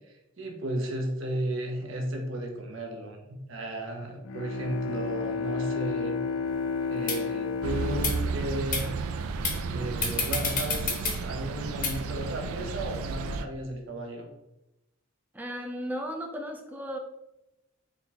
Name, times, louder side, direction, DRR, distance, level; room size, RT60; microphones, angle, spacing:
voice 1, 0.4-6.2 6.9-8.9 9.7-14.3, right 1 dB, 65° right, 2 dB, 0.7 m, -34 dB
Bowed string instrument, 4.2-9.4, left 5 dB, 80° left, 0.5 m, -32 dB
sound 1, 6.5-6.6 7.1-7.2 7.9-8.1 8.7-8.8 9.4-9.6 10.0-11.2 11.8-11.9, left 5 dB, 40° left, 0.6 m, -28 dB
sound 2, 7.6-13.4, right 4 dB, 80° right, 0.3 m, -33 dB
voice 2, 15.3-17.0, equal, 10° right, 3 dB, 0.4 m, -35 dB
3.7 x 2.2 x 4.2 m, 0.90 s
head